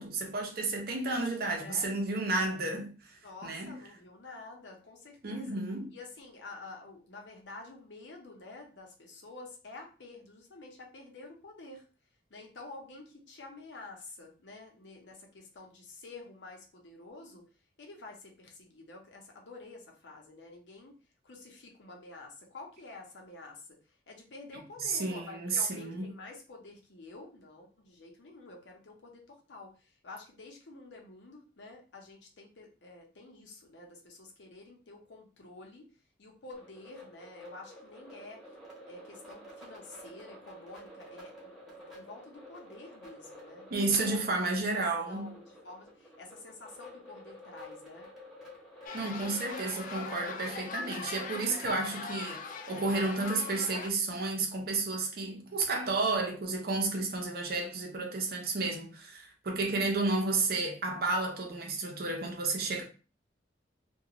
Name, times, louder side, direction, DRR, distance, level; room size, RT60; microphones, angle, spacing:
voice 1, 0.0-2.9 3.4-3.8 5.2-5.9 24.8-26.1 43.7-45.3 48.9-52.4 52.7-62.8, right 3 dB, 55° right, 0.6 m, -31 dB
voice 2, 1.5-1.9 3.2-5.6 5.9-11.9 12.3-17.5 17.8-21.0 21.2-35.8 36.2-38.6 38.9-43.7 44.0-44.2 44.7-48.1 49.1-49.4, left 3 dB, 90° left, 0.7 m, -49 dB
sound 1, 36.5-53.2, equal, ahead, 0.8 m, -50 dB
sound 2, 48.9-53.9, left 5 dB, 45° left, 0.3 m, -41 dB
2.5 x 2.2 x 2.9 m
head